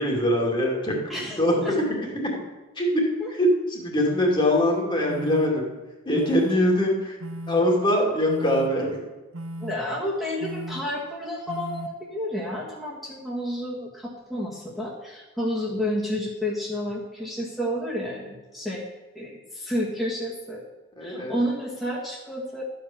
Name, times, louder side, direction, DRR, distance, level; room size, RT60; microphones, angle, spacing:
voice 1, 0.0-1.7 2.1-2.4 2.8-3.0 3.4-5.7 6.1-7.2 7.5-9.0 21.0-21.4, left 1 dB, 25° left, -1 dB, 2.3 m, -23 dB
voice 2, 1.1-1.4 1.6-1.7 3.2-3.3 9.6-18.9 19.1-20.6 21.0-22.6, equal, ahead, -7 dB, 1.6 m, -30 dB
sound 1, 4.4-4.5 5.1-5.5 6.1-6.5 7.2-7.6 8.3-8.7 9.3-9.7 10.4-10.8 11.5-11.9, right 1 dB, 90° right, 0.8 m, -35 dB
12.0 x 5.1 x 7.1 m, 1.2 s
head